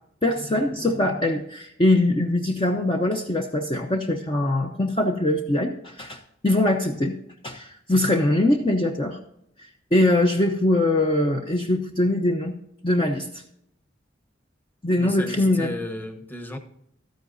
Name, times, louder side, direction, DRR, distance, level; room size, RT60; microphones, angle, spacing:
voice 1, 0.2-7.1 7.4-9.2 9.6-12.5 12.8-13.4 14.8-15.8, left 1 dB, 25° left, 0.7 m, -22 dB
voice 2, 15.0-16.6, left 1 dB, 10° left, 1.1 m, -34 dB
13.0 x 10.5 x 2.6 m
head